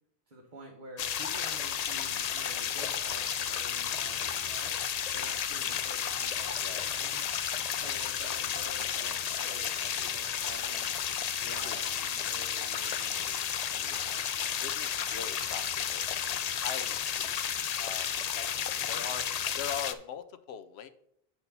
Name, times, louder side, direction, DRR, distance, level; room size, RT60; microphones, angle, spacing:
voice 1, 0.3-4.7 5.1-7.3 7.7-10.9 11.5-13.4 13.7-14.2 18.8-19.0, right 1 dB, 50° right, -2 dB, 1.2 m, -49 dB
sound 1, 1.0-19.9, left 8 dB, 55° left, 0.4 m, -32 dB
voice 2, 6.6-7.1 9.5-9.6 11.4-11.9 14.6-16.0 16.5-17.5 17.8-18.5 18.9-19.2 19.6-20.9, left 8 dB, 75° left, 11 dB, 0.9 m, -41 dB
8.0 x 4.2 x 5.5 m, 0.73 s
omnidirectional pair, 1.1 m